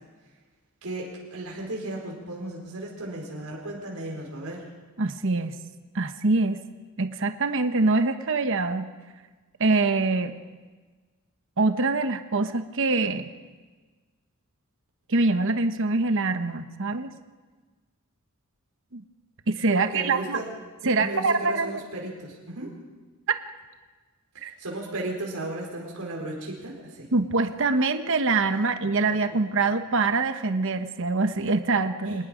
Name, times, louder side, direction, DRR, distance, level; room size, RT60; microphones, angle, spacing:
voice 1, 0.8-4.6 19.7-20.4 20.8-22.7 24.3-27.1 32.0-32.2, right 1 dB, 85° right, -2 dB, 4.6 m, -35 dB
voice 2, 5.0-5.6 5.9-6.6 7.0-8.9 9.6-10.4 11.6-13.3 15.1-17.1 18.9-19.0 19.5-20.4 20.8-21.8 24.4-24.5 27.1-32.3, right 3 dB, 60° right, 8 dB, 1.1 m, -24 dB
25.5 x 20.0 x 5.1 m, 1.3 s
head